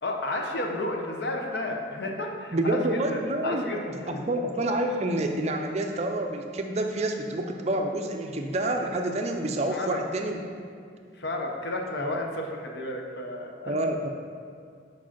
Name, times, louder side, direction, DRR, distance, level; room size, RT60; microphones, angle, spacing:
voice 1, 0.0-4.2 9.7-10.0 11.2-13.9, left 2 dB, 55° left, 2 dB, 0.7 m, -32 dB
voice 2, 2.5-3.7 4.1-10.4 12.0-12.2 13.6-14.1, right 1 dB, 35° right, 4 dB, 0.4 m, -28 dB
4.8 x 4.7 x 5.8 m, 2.2 s
head